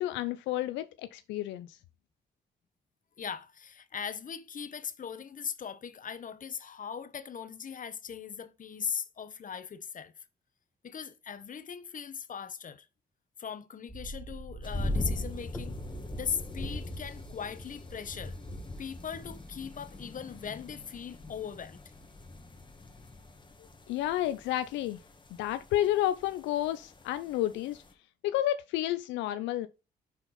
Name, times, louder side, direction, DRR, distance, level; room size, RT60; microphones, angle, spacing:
voice 1, 0.0-1.8 23.9-25.0 25.4-27.8 28.2-29.7, left 13 dB, 85° left, 0.4 m, -30 dB
voice 2, 3.2-10.1 10.8-12.9 13.4-15.8 16.1-18.3 18.8-21.8, left 7 dB, 45° left, 0.9 m, -39 dB
dark toms, 13.9-20.7 21.0-21.1, right 1 dB, 5° left, 1.2 m, -47 dB
sound 1, 14.6-27.9, left 1 dB, 25° left, 1.5 m, -40 dB
6.0 x 4.4 x 3.9 m
supercardioid pair, 55°, 18 cm